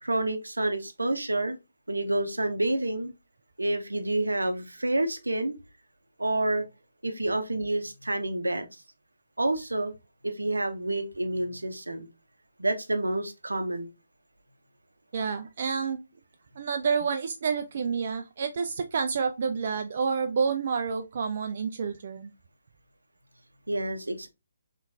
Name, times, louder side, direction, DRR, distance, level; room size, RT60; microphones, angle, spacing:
voice 1, 0.0-1.6 1.9-3.1 3.6-5.6 6.2-6.6 7.0-8.7 9.4-9.9 10.2-12.1 12.6-13.9 23.7-24.3, right 1 dB, 75° right, 0.7 m, -28 dB
voice 2, 15.1-16.0 16.6-22.3, right 5 dB, 45° right, 0.4 m, -29 dB
3.7 x 3.1 x 2.6 m
figure-of-eight pair, 140°, 0 cm